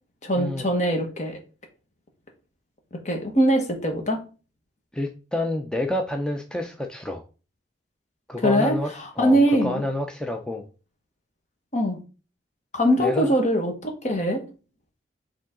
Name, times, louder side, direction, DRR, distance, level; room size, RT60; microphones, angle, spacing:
voice 1, 0.2-1.4 3.0-4.2 8.4-9.8 11.7-12.0 12.7-14.4, equal, 40° left, 3 dB, 1.4 m, -22 dB
voice 2, 4.9-7.2 8.3-8.9 9.2-10.7 13.0-13.3, left 1 dB, 5° left, 4 dB, 0.5 m, -28 dB
7.1 x 3.7 x 3.7 m, 0.34 s
head